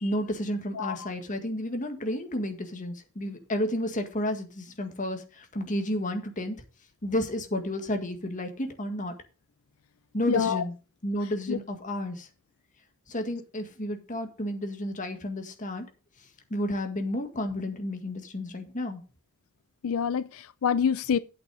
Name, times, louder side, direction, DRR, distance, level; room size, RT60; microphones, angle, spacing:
voice 1, 0.0-6.6 7.0-9.1 10.1-10.7 11.0-12.3 13.1-15.9 16.5-19.0, left 1 dB, 40° left, 1.8 m, -31 dB
voice 2, 10.3-10.6 11.5-11.6 19.8-21.2, left 7 dB, 80° left, 0.4 m, -26 dB
8.8 x 8.3 x 4.9 m
head